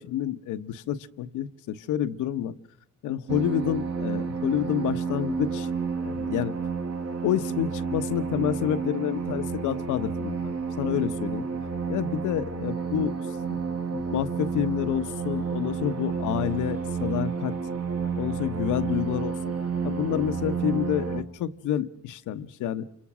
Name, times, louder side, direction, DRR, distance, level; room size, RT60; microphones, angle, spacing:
voice 1, 0.0-2.5 3.0-5.7 6.0-6.5 7.2-11.5 11.9-13.2 13.5-13.6 13.9-17.5 18.1-19.5 19.8-22.9, left 11 dB, 85° left, 12 dB, 1.1 m, -29 dB
sound 1, 3.3-21.2, right 5 dB, 50° right, 2.1 m, -30 dB
29.5 x 26.5 x 6.1 m, 0.76 s
cardioid pair, 90°, 30 cm